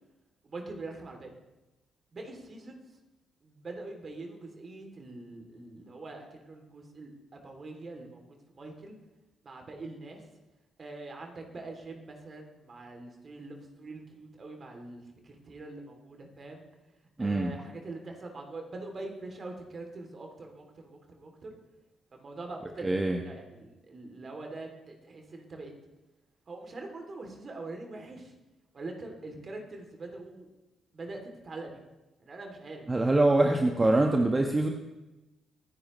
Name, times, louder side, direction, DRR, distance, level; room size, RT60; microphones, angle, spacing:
voice 1, 0.4-1.3 2.1-3.0 3.4-9.0 9.4-10.3 10.8-16.6 17.2-21.5 22.1-22.9 23.2-25.7 26.5-28.3 28.7-30.5 30.9-31.8 32.2-33.1, right 2 dB, 45° right, 3 dB, 3.0 m, -43 dB
voice 2, 17.2-17.5 22.8-23.2 32.9-34.7, right 2 dB, 25° right, 3 dB, 1.4 m, -24 dB
25.0 x 10.5 x 3.2 m, 1.0 s
hypercardioid pair, 45°, 0 cm